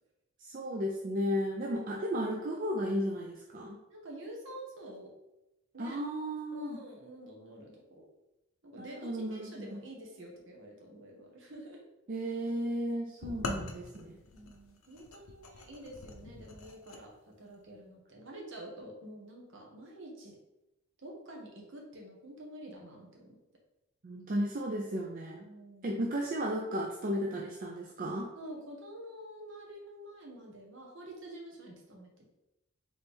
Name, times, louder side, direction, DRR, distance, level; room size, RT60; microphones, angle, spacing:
voice 1, 0.4-3.8 5.8-6.8 8.8-9.8 12.1-14.2 24.0-25.5 25.8-28.3, equal, 40° right, 0 dB, 0.4 m, -34 dB
voice 2, 3.9-5.1 5.7-6.0 6.5-8.1 8.6-11.8 14.3-17.1 17.4-20.3 21.0-23.4 25.4-26.1 28.4-32.3, right 1 dB, 60° right, -1 dB, 1.1 m, -48 dB
sound 1, 13.2-17.0, left 3 dB, 75° left, 0.6 m, -43 dB
4.2 x 3.1 x 3.4 m, 0.94 s
head